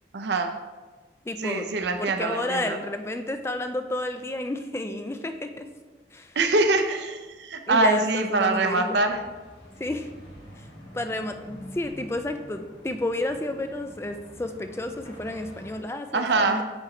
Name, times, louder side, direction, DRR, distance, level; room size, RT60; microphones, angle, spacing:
voice 1, 0.1-0.6 1.4-2.8 6.4-9.2 16.1-16.6, right 3 dB, 70° right, 6 dB, 0.5 m, -24 dB
voice 2, 1.3-1.7 2.0-5.7 6.1-6.4 7.7-9.0 9.8-10.1 10.6-10.7 10.9-16.6, left 2 dB, 15° left, 7 dB, 0.3 m, -31 dB
sound 1, 8.4-15.8, equal, 70° left, 1.5 m, -47 dB
7.6 x 3.1 x 4.8 m, 1.3 s
head